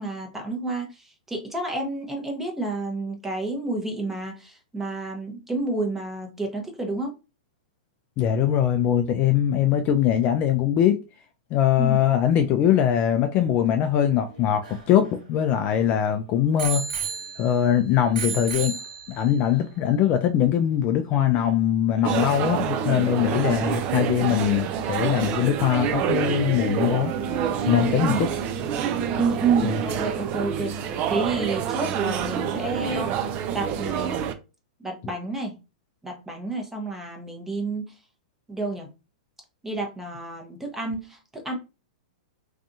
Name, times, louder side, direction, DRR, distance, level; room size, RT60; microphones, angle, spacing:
voice 1, 0.0-7.1 11.8-12.0 28.1-28.2 29.2-34.2 34.8-35.5 36.0-37.9 38.5-38.9 39.6-41.5, right 3 dB, 5° right, 0.8 m, -30 dB
voice 2, 8.2-11.0 11.5-16.8 17.4-18.7 19.1-27.1 27.7-28.3 29.6-29.8, left 10 dB, 35° left, 0.3 m, -22 dB
Bicycle bell, 14.3-15.9 16.6-17.7 18.1-19.4 20.1-20.2, right 6 dB, 70° right, 1.2 m, -33 dB
sound 1, 22.0-34.3, right 8 dB, 35° right, 0.4 m, -27 dB
2.6 x 2.3 x 2.6 m
hypercardioid pair, 125°, 4 cm